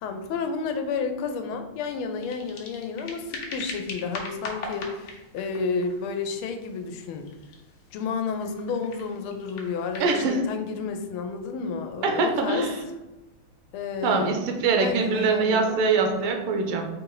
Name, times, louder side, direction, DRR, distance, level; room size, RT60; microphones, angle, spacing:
voice 1, 0.0-7.3 7.9-12.7 13.7-14.3 14.8-15.8, left 5 dB, 85° left, 6 dB, 1.5 m, -31 dB
sound 1, 2.1-10.1, left 3 dB, 60° left, 1.1 m, -41 dB
voice 2, 10.0-10.4 12.0-12.8 14.0-16.9, right 4 dB, 85° right, 3 dB, 1.6 m, -23 dB
4.5 x 2.5 x 4.7 m, 1.1 s
omnidirectional pair, 2.3 m